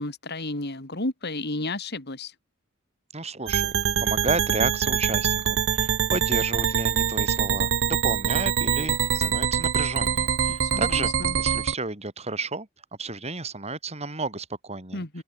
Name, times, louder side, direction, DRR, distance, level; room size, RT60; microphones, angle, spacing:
voice 1, 0.0-2.3 10.5-11.4 14.9-15.2, left 2 dB, 50° left, 3.3 m, -32 dB
voice 2, 3.1-12.7 13.0-15.0, right 3 dB, 30° right, 5.4 m, -32 dB
sound 1, 3.5-11.7, right 7 dB, 65° right, 0.9 m, -24 dB
open air
head